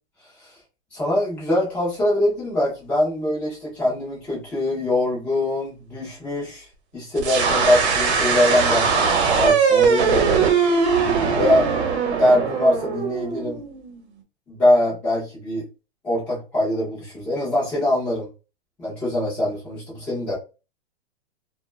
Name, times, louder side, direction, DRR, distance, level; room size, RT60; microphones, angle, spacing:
voice 1, 0.9-6.7 6.9-10.5 11.4-11.7 12.2-13.6 14.5-15.6 16.0-18.3 18.8-20.4, left 1 dB, 5° left, -6 dB, 0.3 m, -23 dB
sound 1, 7.2-14.0, right 5 dB, 70° right, 0.9 m, -20 dB
2.3 x 2.2 x 3.0 m, 0.32 s
hypercardioid pair, 155°, 34 cm